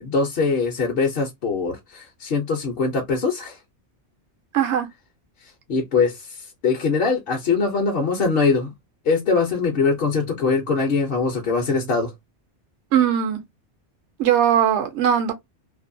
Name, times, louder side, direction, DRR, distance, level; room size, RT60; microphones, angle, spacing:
voice 1, 0.0-3.6 5.7-8.7 9.0-12.1, left 4 dB, 60° left, 0.8 m, -22 dB
voice 2, 4.5-4.9 12.9-13.4 14.2-15.3, right 9 dB, 80° right, 0.9 m, -19 dB
2.6 x 2.1 x 2.5 m
omnidirectional pair, 1.2 m